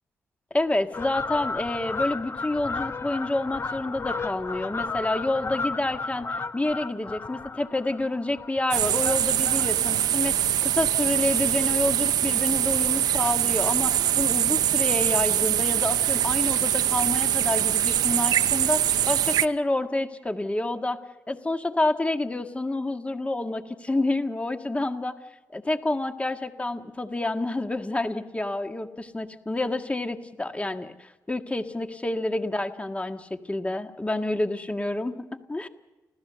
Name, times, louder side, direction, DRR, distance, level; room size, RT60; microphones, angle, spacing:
voice 1, 0.5-21.0 21.3-25.2 25.5-35.7, left 2 dB, 20° left, 6 dB, 1.8 m, -28 dB
Fowl, 0.9-11.7 12.2-12.4 13.1-13.7 14.0-14.1 14.3-14.4 14.7-14.8 15.1-15.3 16.3-16.4 16.9-17.0, left 3 dB, 40° left, 1.2 m, -34 dB
sound 1, 8.7-19.5, right 11 dB, 80° right, 0.6 m, -23 dB
30.0 x 13.5 x 6.9 m, 1.2 s
supercardioid pair, 55°, 7 cm